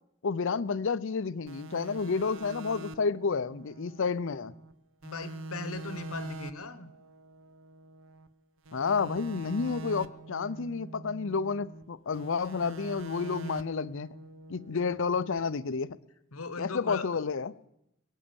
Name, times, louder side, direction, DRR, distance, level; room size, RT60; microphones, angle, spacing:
voice 1, 0.2-4.5 8.7-14.1 14.5-16.0 16.6-17.5, left 5 dB, 65° left, 16 dB, 0.6 m, -30 dB
sound 1, 1.5-4.7 5.0-8.3 8.7-11.8 12.1-15.4, right 2 dB, 65° right, 0.7 m, -44 dB
voice 2, 5.0-6.9 14.7-14.8 16.3-17.2, left 3 dB, 85° left, 13 dB, 1.2 m, -39 dB
22.5 x 8.4 x 7.0 m, 0.82 s
head